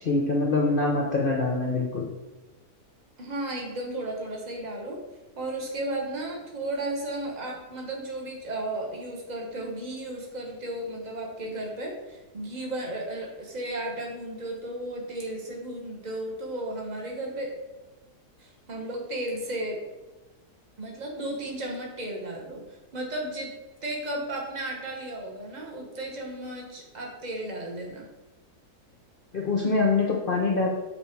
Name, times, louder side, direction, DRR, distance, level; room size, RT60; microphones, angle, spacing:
voice 1, 0.0-2.1 29.3-30.7, left 3 dB, 45° left, -1 dB, 0.7 m, -24 dB
voice 2, 3.2-5.0 5.3-17.5 18.4-19.8 20.8-23.5 23.8-28.1, right 1 dB, 30° right, -1 dB, 1.3 m, -34 dB
6.9 x 4.0 x 4.6 m, 1.1 s
omnidirectional pair, 1.7 m